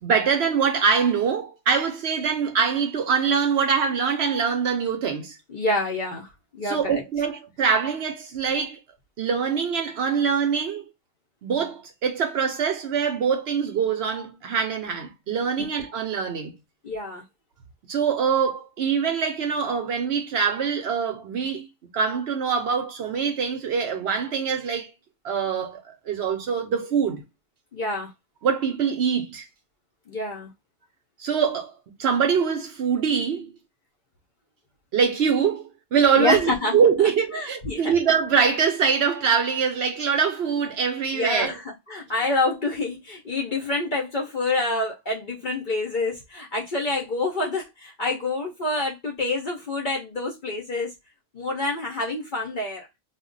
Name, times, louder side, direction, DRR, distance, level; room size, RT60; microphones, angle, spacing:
voice 1, 0.0-5.4 6.6-8.8 9.2-10.8 11.4-16.6 17.9-21.7 21.9-24.9 25.2-27.2 28.4-29.5 31.2-31.7 32.0-33.5 34.9-41.5, right 6 dB, 65° right, 0.8 m, -24 dB
voice 2, 5.5-7.0 16.8-17.2 27.7-28.1 30.1-30.5 36.2-36.8 37.3-37.9 41.1-50.9 51.3-52.9, left 2 dB, 55° left, 0.6 m, -27 dB
2.3 x 2.1 x 3.7 m
omnidirectional pair, 1.4 m